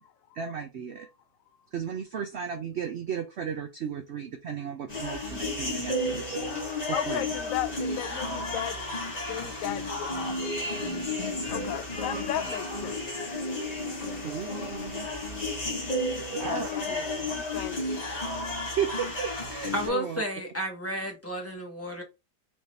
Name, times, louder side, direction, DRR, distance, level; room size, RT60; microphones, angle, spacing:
voice 1, 0.3-1.1 1.7-6.4 6.9-7.3 14.1-15.3 16.4-16.8 17.5-17.9 18.8-20.2, right 8 dB, 60° right, 0.7 m, -35 dB
sound 1, 4.9-19.9, left 1 dB, 25° left, 1.2 m, -32 dB
voice 2, 6.9-8.8 9.3-10.5 11.5-13.0 16.4-17.8, left 11 dB, 65° left, 0.9 m, -35 dB
voice 3, 19.7-22.0, equal, 10° left, 1.0 m, -32 dB
4.8 x 2.8 x 3.3 m
omnidirectional pair, 1.8 m